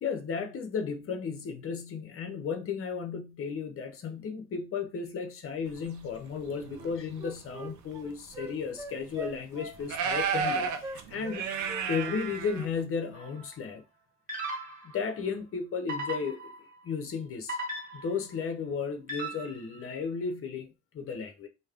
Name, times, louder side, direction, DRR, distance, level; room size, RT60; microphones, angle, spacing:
voice 1, 0.0-11.4 11.9-13.8 14.9-16.5 16.8-17.6 17.9-21.5, left 5 dB, 45° left, 0.7 m, -34 dB
sound 1, 6.3-6.9 7.8-7.9 8.3-8.4 9.1-9.2 9.8-12.8, right 6 dB, 75° right, 0.5 m, -32 dB
Wind instrument woodwind instrument, 6.7-11.4 11.7-12.7 13.0-13.2, right 1 dB, 10° right, 0.4 m, -42 dB
sound 2, 13.1-13.4 14.3-15.0 15.9-16.8 17.5-18.3 19.1-19.7, right 1 dB, 25° right, 1.1 m, -37 dB
3.1 x 2.1 x 2.4 m
cardioid pair, 90°, 30 cm